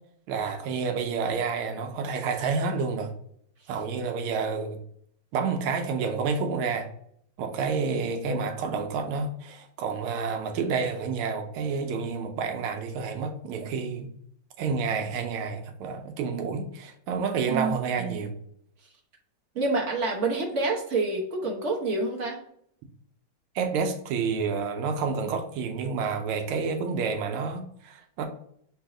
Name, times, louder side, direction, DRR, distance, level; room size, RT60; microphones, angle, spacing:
voice 1, 0.3-3.1 3.7-4.8 5.3-6.9 7.4-14.1 14.6-18.3 23.5-28.3, right 5 dB, 90° right, 1.6 m, -29 dB
voice 2, 17.5-18.2 19.5-22.4, right 3 dB, 50° right, 0.9 m, -28 dB
4.0 x 2.7 x 4.7 m
omnidirectional pair, 2.3 m